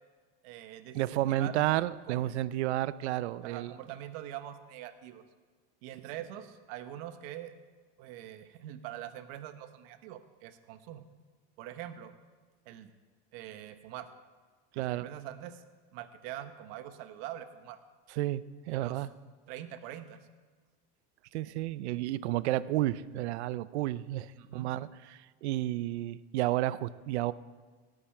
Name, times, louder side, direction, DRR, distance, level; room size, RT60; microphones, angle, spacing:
voice 1, 0.4-1.6 2.1-2.2 3.4-5.2 5.8-7.5 8.0-11.0 11.6-12.1 12.7-12.9 13.3-14.1 14.7-15.6 15.9-17.8 18.7-19.0 19.5-20.3 24.4-24.7, right 12 dB, 60° right, 10 dB, 1.1 m, -44 dB
voice 2, 0.9-3.7 14.7-15.1 18.1-19.1 21.3-27.3, right 15 dB, 85° right, 17 dB, 0.6 m, -31 dB
18.0 x 8.7 x 4.5 m, 1.4 s
supercardioid pair, 145°, 33 cm